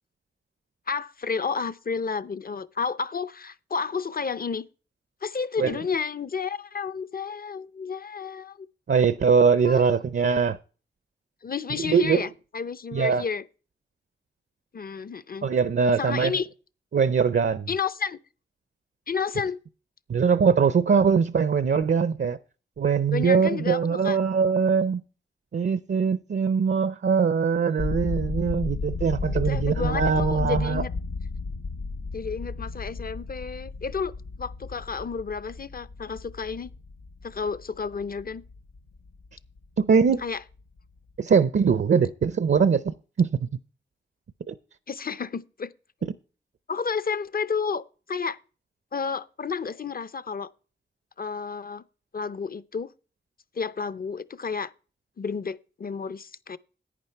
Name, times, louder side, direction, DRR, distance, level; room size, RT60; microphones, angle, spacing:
voice 1, 0.9-4.6 5.2-8.7 9.6-9.8 11.4-13.4 14.7-15.5 16.0-16.5 17.7-18.2 19.1-19.6 23.1-24.2 29.5-30.9 32.1-36.7 37.2-38.4 40.2-40.4 44.9-45.7 46.7-48.4 48.9-50.5 51.2-51.8 52.1-52.9 53.6-54.7 55.2-56.6, left 5 dB, 50° left, 0.6 m, -31 dB
voice 2, 8.9-10.6 11.8-12.3 12.9-13.2 15.4-16.4 16.9-17.7 20.1-22.4 22.8-25.0 25.5-30.8 39.8-40.2 41.2-43.5 44.5-44.6, right 6 dB, 65° right, 0.5 m, -22 dB
sound 1, 27.8-39.7 39.9-40.3 40.6-40.8, left 4 dB, 85° left, 0.8 m, -33 dB
11.0 x 9.0 x 4.5 m
wide cardioid pair, 65°, 20 cm